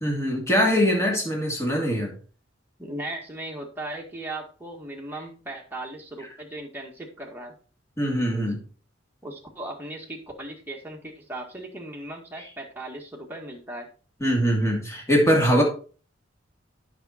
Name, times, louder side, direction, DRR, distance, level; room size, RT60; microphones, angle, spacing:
voice 1, 0.0-2.1 8.0-8.6 14.2-15.6, equal, 15° left, -1 dB, 2.6 m, -22 dB
voice 2, 2.8-7.5 9.2-13.9 15.5-15.6, right 1 dB, 10° right, -1 dB, 1.8 m, -37 dB
9.0 x 6.0 x 4.2 m, 0.39 s
head